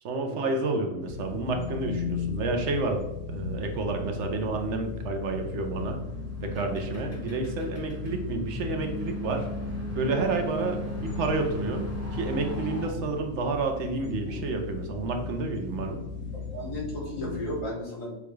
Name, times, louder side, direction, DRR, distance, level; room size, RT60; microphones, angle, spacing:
voice 1, 0.0-3.0 3.3-6.0 6.4-9.5 10.0-16.0, right 3 dB, 70° right, 4 dB, 0.9 m, -30 dB
sound 1, 1.0-17.6, left 5 dB, 60° left, 1.0 m, -36 dB
sound 2, 5.6-12.9, right 1 dB, 15° left, 0.8 m, -37 dB
voice 2, 16.3-18.2, equal, 85° left, -3 dB, 1.8 m, -35 dB
6.8 x 2.3 x 3.1 m, 0.96 s
omnidirectional pair, 1.4 m